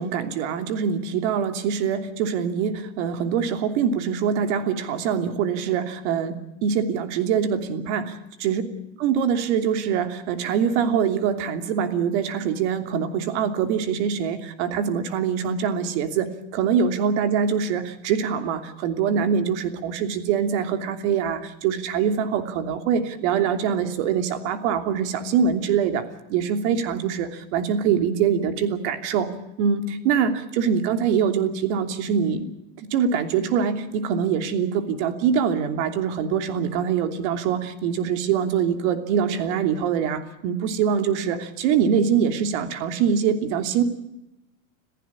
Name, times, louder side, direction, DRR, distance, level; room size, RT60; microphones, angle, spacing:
voice 1, 0.0-8.1 8.4-8.6 9.0-26.0 26.3-29.3 29.6-32.5 32.8-43.8, right 7 dB, 70° right, 8 dB, 3.0 m, -24 dB
27.5 x 15.0 x 8.6 m, 0.91 s
supercardioid pair, 155°, 37 cm